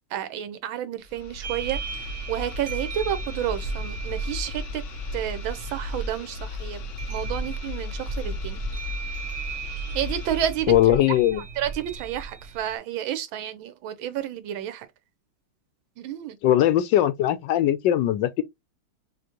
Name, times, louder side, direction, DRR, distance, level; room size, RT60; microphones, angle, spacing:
voice 1, 0.1-1.8 2.3-4.8 5.1-6.8 7.1-8.6 9.9-10.7 11.3-14.9 16.0-16.4, right 11 dB, 80° right, 1.5 m, -30 dB
sound 1, 1.0-10.7, left 1 dB, 90° left, 0.6 m, -35 dB
sound 2, 1.4-12.8, right 4 dB, 55° right, 0.8 m, -37 dB
voice 2, 10.7-11.4 16.4-18.4, left 12 dB, 75° left, 1.2 m, -20 dB
5.9 x 2.5 x 2.8 m
omnidirectional pair, 2.2 m